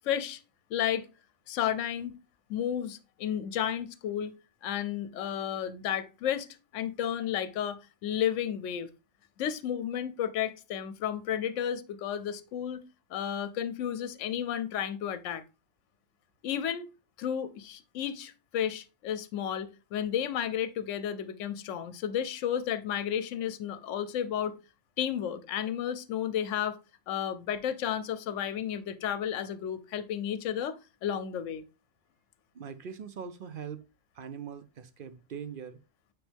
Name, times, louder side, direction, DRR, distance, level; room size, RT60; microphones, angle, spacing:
voice 1, 0.0-0.4 0.7-1.1 1.5-2.1 2.5-4.3 4.6-8.9 9.4-12.8 13.1-15.4 16.4-16.9 17.2-24.5 25.0-26.8 27.1-31.6, left 9 dB, 75° left, 1.0 m, -32 dB
voice 2, 32.5-33.8 34.1-35.8, right 7 dB, 55° right, 0.6 m, -41 dB
9.0 x 3.3 x 3.4 m
omnidirectional pair, 1.3 m